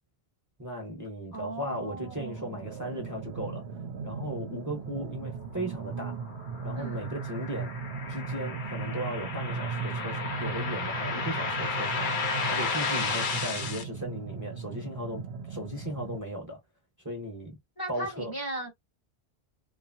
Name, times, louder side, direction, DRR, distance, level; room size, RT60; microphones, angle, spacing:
voice 1, 0.6-3.6 4.0-6.2 6.6-7.7 8.1-16.6 17.0-17.6 17.9-18.3, equal, 20° right, 0.8 m, -37 dB
voice 2, 1.3-2.7 6.8-7.1 17.8-18.7, right 1 dB, 20° left, 0.9 m, -38 dB
sound 1, 1.5-16.2, right 5 dB, 75° right, 0.9 m, -38 dB
sound 2, 6.0-13.8, left 4 dB, 55° left, 0.7 m, -33 dB
2.8 x 2.5 x 2.5 m
omnidirectional pair, 1.1 m